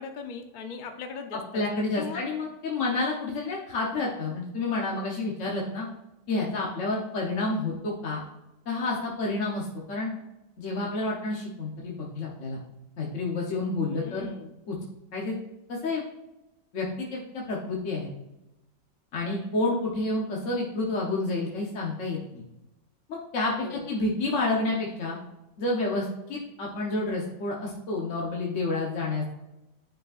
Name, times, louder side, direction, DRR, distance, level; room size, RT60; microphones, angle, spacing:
voice 1, 0.0-2.2 13.9-14.5 23.6-23.9, left 5 dB, 85° left, 5 dB, 0.4 m, -39 dB
voice 2, 1.5-5.9 6.3-8.2 8.7-10.1 10.6-12.6 13.0-14.3 14.7-14.8 15.1-15.4 15.7-16.0 16.7-18.1 19.1-22.4 23.1-25.2 25.6-29.3, left 2 dB, 50° left, -3 dB, 1.2 m, -29 dB
10.0 x 5.1 x 2.4 m, 0.94 s
omnidirectional pair, 1.8 m